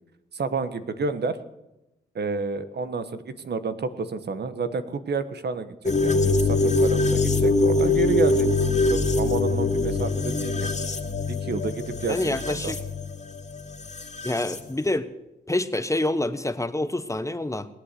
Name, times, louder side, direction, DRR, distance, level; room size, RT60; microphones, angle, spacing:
voice 1, 0.3-1.4 2.1-5.7 6.0-8.5 8.9-10.8 11.3-12.7, right 4 dB, 65° right, 11 dB, 1.2 m, -30 dB
sound 1, 5.8-14.6, left 3 dB, 40° left, 2.4 m, -24 dB
voice 2, 12.1-12.8 14.2-15.1 15.5-17.7, left 1 dB, 15° left, 12 dB, 1.0 m, -27 dB
20.0 x 8.4 x 8.3 m, 0.94 s
cardioid pair, 55°, 19 cm